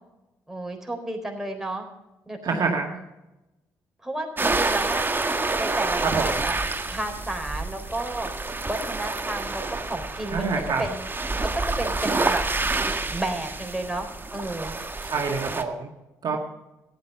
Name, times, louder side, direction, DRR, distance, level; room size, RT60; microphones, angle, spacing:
voice 1, 0.5-1.8 2.3-2.4 4.0-5.1 5.6-6.5 6.9-8.3 8.7-10.5 10.8-11.0 11.4-12.4 12.8-14.1 14.3-14.7 16.3-16.4, right 2 dB, 5° right, 1 dB, 4.1 m, -32 dB
voice 2, 2.4-3.0 6.0-6.4 10.3-10.9 15.0-15.9 16.2-16.4, right 4 dB, 55° right, 1 dB, 1.9 m, -26 dB
sound 1, 4.4-15.6, right 3 dB, 25° right, 1.5 m, -28 dB
14.0 x 9.7 x 5.6 m, 1.0 s
hypercardioid pair, 45°, 8 cm